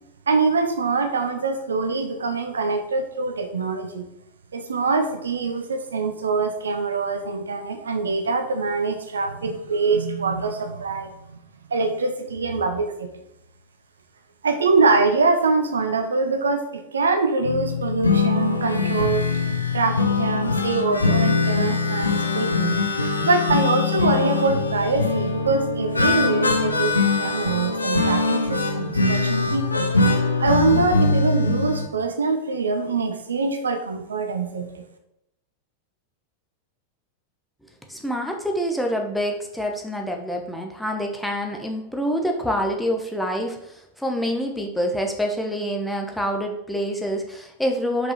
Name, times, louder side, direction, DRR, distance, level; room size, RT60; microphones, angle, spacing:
voice 1, 0.3-4.1 4.5-11.4 11.7-13.2 14.4-19.3 19.7-22.8 23.2-29.9 30.4-34.8, right 4 dB, 70° right, 6 dB, 0.7 m, -24 dB
sound 1, 17.4-31.9, left 4 dB, 80° left, 0.7 m, -22 dB
voice 2, 37.9-48.1, equal, ahead, 2 dB, 1.0 m, -26 dB
5.3 x 4.9 x 4.6 m, 0.83 s
figure-of-eight pair, 90°, 0 cm